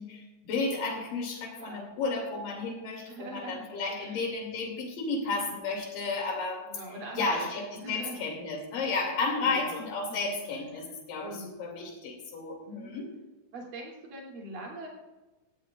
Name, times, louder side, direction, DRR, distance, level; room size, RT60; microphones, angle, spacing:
voice 1, 0.0-6.7 7.1-13.1, left 3 dB, 85° left, 1 dB, 4.3 m, -33 dB
voice 2, 1.5-1.9 3.1-3.7 4.0-4.2 6.6-7.5 7.8-8.2 9.4-9.8 10.1-10.3 11.2-11.5 12.7-13.0 13.5-14.9, right 2 dB, 80° right, -2 dB, 4.9 m, -42 dB
18.5 x 14.5 x 2.5 m, 1.1 s
omnidirectional pair, 3.8 m